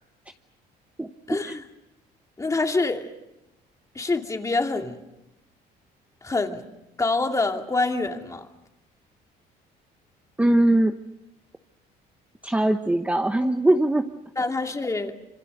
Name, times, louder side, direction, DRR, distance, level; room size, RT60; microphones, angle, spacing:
voice 1, 1.3-1.6 2.4-3.1 3.9-5.0 6.2-6.7 7.0-8.5 14.4-15.1, left 3 dB, 20° left, 4 dB, 2.5 m, -26 dB
voice 2, 10.4-10.9 12.4-14.0, right 1 dB, 10° right, 6 dB, 1.0 m, -21 dB
26.0 x 25.5 x 6.6 m, 0.94 s
cardioid pair, 110°, 17 cm